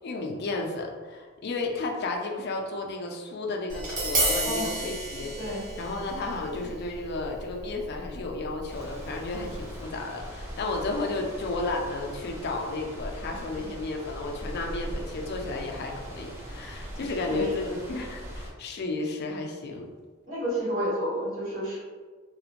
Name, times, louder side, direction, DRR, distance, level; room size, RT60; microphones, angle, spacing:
voice 1, 0.0-5.3 5.8-19.9, left 2 dB, 50° left, 1 dB, 0.3 m, -33 dB
Tap, 3.7-9.8, right 1 dB, 40° right, 0.7 m, -33 dB
sound 1, 8.7-18.5, equal, 10° right, 0.4 m, -40 dB
voice 2, 17.3-17.8 20.3-21.8, equal, 70° right, -10 dB, 1.4 m, -30 dB
2.4 x 2.1 x 2.8 m, 1.4 s
head